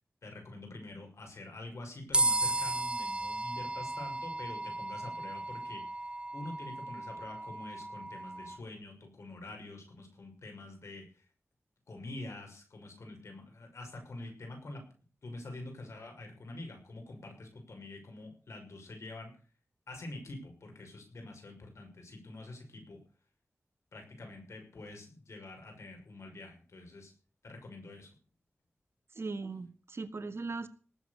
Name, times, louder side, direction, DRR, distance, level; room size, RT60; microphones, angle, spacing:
voice 1, 0.2-11.2 11.9-14.8 15.2-19.3 19.9-23.0 23.9-27.1 27.4-28.1, left 2 dB, 80° left, 4 dB, 6.2 m, -46 dB
sound 1, 2.1-8.6, right 1 dB, 25° right, 1.5 m, -34 dB
voice 2, 29.2-30.7, right 3 dB, 60° right, 10 dB, 1.6 m, -38 dB
19.0 x 8.2 x 6.9 m, 0.39 s
wide cardioid pair, 65°, 5 cm